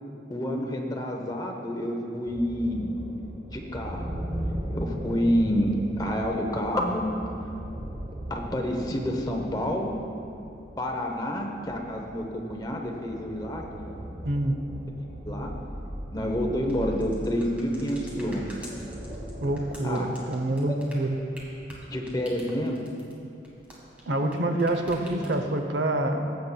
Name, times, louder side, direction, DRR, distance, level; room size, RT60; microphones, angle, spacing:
voice 1, 0.3-2.9 3.5-4.1 4.7-7.1 8.3-9.9 10.8-14.1 15.2-15.5 16.1-18.5 19.8-20.1 21.8-22.8, equal, 20° left, 1 dB, 0.7 m, -28 dB
sound 1, 2.3-19.9, right 1 dB, 25° right, 0.8 m, -38 dB
voice 2, 14.2-14.6 19.4-21.2 24.1-26.2, right 1 dB, 75° right, 6 dB, 0.7 m, -26 dB
sound 2, 16.6-24.3 24.6-25.6, equal, 10° right, 1.5 m, -46 dB
15.0 x 8.0 x 2.2 m, 2.7 s
head